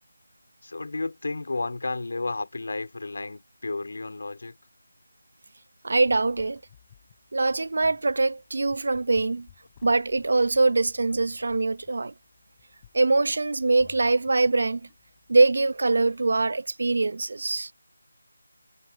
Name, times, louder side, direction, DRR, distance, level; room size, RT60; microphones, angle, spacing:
voice 1, 0.6-4.6, left 3 dB, 60° left, 4.0 m, -32 dB
voice 2, 5.8-6.6 7.3-9.5 9.8-12.1 12.9-14.8 15.3-17.7, right 3 dB, 55° right, 0.8 m, -23 dB
sound 1, 6.0-16.6, left 10 dB, 20° left, 5.1 m, -57 dB
figure-of-eight pair, 175°, 0 cm